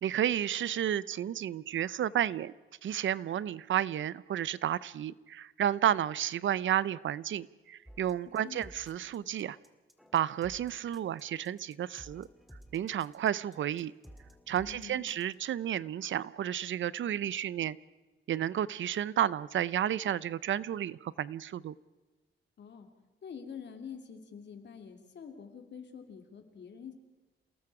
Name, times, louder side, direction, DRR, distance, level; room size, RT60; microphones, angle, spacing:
voice 1, 0.0-2.5 2.8-9.6 10.1-12.3 12.7-13.9 14.5-17.8 18.3-21.7, right 10 dB, 70° right, 19 dB, 0.6 m, -32 dB
sound 1, 7.9-15.3, equal, ahead, 2.3 m, -55 dB
voice 2, 14.7-15.0 22.6-22.9 23.2-26.9, left 7 dB, 60° left, 5 dB, 3.0 m, -46 dB
28.5 x 19.0 x 4.9 m, 1.2 s
cardioid pair, 110°, 20 cm